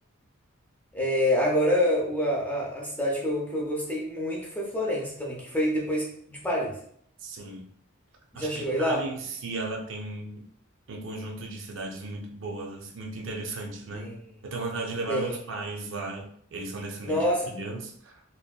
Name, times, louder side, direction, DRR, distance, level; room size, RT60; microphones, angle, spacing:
voice 1, 0.9-6.8 8.3-9.1 13.9-14.2 15.1-15.4 17.0-17.5, equal, 10° left, -4 dB, 0.5 m, -27 dB
voice 2, 7.2-7.7 8.3-10.4 10.9-14.1 14.4-18.2, right 2 dB, 65° right, 1 dB, 0.4 m, -36 dB
2.6 x 2.1 x 2.2 m, 0.64 s
head